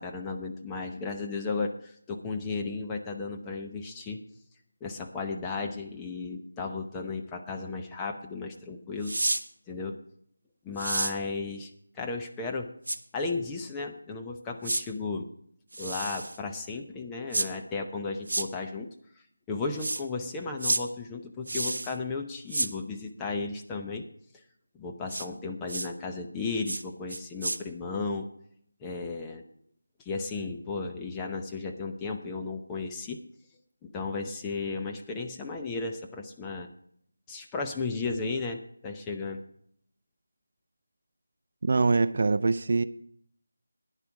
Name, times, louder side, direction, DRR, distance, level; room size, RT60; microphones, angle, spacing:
voice 1, 0.0-4.2 4.8-9.1 9.7-10.0 10.6-11.7 11.9-12.7 13.1-15.3 15.8-18.9 19.5-24.1 24.7-28.3 28.8-29.4 30.0-33.2 33.8-36.7 37.3-39.4, left 4 dB, 10° left, 2 dB, 0.8 m, -34 dB
sound 1, 9.0-9.4 10.8-11.1 12.9-13.0 14.6-14.8 15.7-16.4 17.3-17.5 18.3-18.5 19.8-20.0 20.6-20.8 21.5-21.9 22.5-22.7 25.1-25.3 25.7-25.9 26.7-26.8 27.1-27.6, right 2 dB, 70° right, 1.1 m, -30 dB
voice 2, 41.6-42.8, right 3 dB, 50° right, 12 dB, 0.5 m, -24 dB
10.5 x 9.9 x 4.8 m, 0.67 s
figure-of-eight pair, 170°, 0 cm